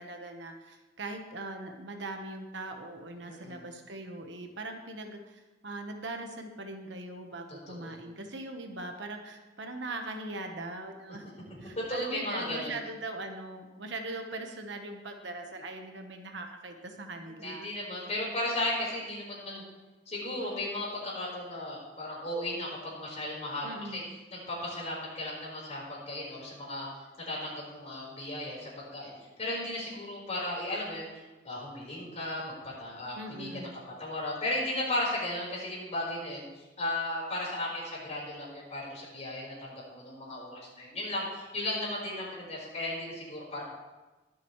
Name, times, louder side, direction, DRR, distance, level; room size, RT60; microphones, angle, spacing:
voice 1, 0.0-11.3 11.6-17.7 23.6-24.1 33.1-33.8, right 2 dB, 70° right, 4 dB, 1.3 m, -41 dB
voice 2, 3.2-3.6 7.7-8.0 11.7-12.8 17.3-19.6 20.1-24.0 24.3-26.9 27.2-29.1 29.4-33.7 34.0-43.6, left 1 dB, 35° left, -4 dB, 4.8 m, -35 dB
22.0 x 7.9 x 3.3 m, 1.2 s
head